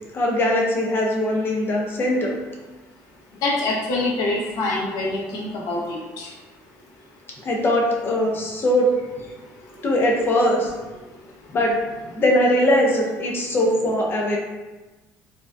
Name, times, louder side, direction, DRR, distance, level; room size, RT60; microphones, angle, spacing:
voice 1, 0.1-2.4 7.4-8.9 9.2-9.3 9.8-10.7 11.5-11.8 12.2-14.4, left 1 dB, 35° left, -1 dB, 0.5 m, -21 dB
voice 2, 3.4-6.3, left 2 dB, 70° left, -4 dB, 0.7 m, -25 dB
2.5 x 2.2 x 2.2 m, 1.2 s
cardioid pair, 125°, 7 cm